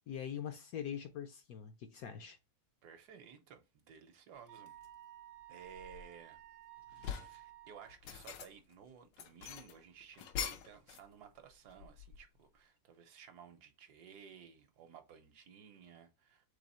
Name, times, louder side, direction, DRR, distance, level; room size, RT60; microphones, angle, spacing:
voice 1, 0.1-2.4, left 9 dB, 70° left, 0.9 m, -43 dB
voice 2, 2.8-4.7 5.5-6.4 6.9-16.5, right 7 dB, 70° right, 1.3 m, -56 dB
Wind instrument woodwind instrument, 4.5-8.0, right 14 dB, 85° right, 1.3 m, -54 dB
sound 1, 4.7-4.9 5.4-6.4 6.8-7.4 7.9-8.7 9.1-11.1 11.4-12.4, left 8 dB, 85° left, 1.3 m, -44 dB
3.7 x 3.4 x 4.1 m
omnidirectional pair, 1.9 m